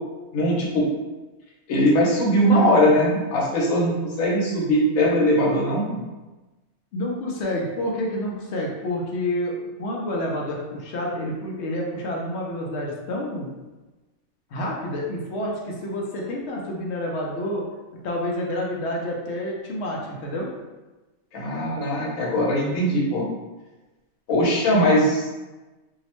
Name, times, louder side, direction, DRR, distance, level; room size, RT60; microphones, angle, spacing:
voice 1, 0.3-0.9 1.7-6.0 21.3-23.2 24.3-25.3, equal, 85° left, -4 dB, 1.2 m, -20 dB
voice 2, 6.9-13.5 14.5-17.6 18.0-20.5, left 1 dB, 65° left, -1 dB, 0.7 m, -28 dB
2.7 x 2.0 x 2.9 m, 1.2 s
omnidirectional pair, 1.4 m